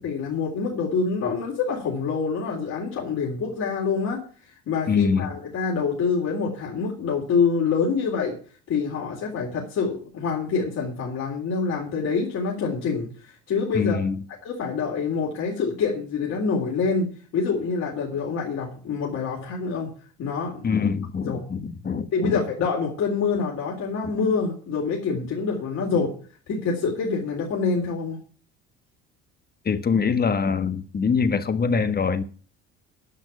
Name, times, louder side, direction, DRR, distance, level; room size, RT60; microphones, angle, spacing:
voice 1, 0.0-8.4 8.7-14.0 14.4-19.9 20.2-20.7 21.2-21.4 22.1-26.1 26.5-28.2, left 5 dB, 55° left, 3.7 m, -26 dB
voice 2, 4.9-5.3 13.7-14.1 20.6-22.4 29.6-32.2, left 5 dB, 30° left, 1.4 m, -24 dB
11.0 x 6.2 x 8.7 m
hypercardioid pair, 70°, 32 cm